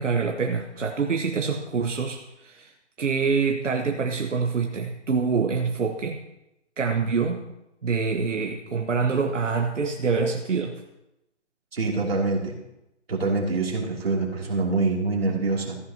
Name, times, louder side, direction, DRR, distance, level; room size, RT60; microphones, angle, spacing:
voice 1, 0.0-2.7 3.0-6.2 6.8-7.4 7.8-10.7, right 5 dB, 85° right, 3 dB, 1.3 m, -25 dB
voice 2, 11.7-12.6 13.1-15.8, right 3 dB, 55° right, -1 dB, 2.8 m, -25 dB
14.0 x 11.0 x 2.8 m, 0.89 s
hypercardioid pair, 175°, 36 cm